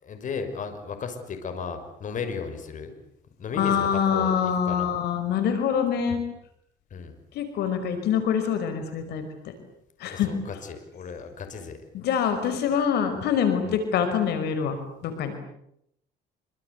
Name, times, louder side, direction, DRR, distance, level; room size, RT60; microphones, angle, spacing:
voice 1, 0.0-2.9 3.4-4.9 6.9-7.1 10.1-11.8 12.7-12.8 13.6-13.8, left 5 dB, 50° left, 8 dB, 5.9 m, -35 dB
voice 2, 3.5-6.2 7.4-9.2 10.0-10.3 11.9-14.8 15.0-15.3, left 7 dB, 75° left, 8 dB, 5.3 m, -25 dB
26.5 x 26.0 x 8.3 m, 0.76 s
cardioid pair, 110°, 17 cm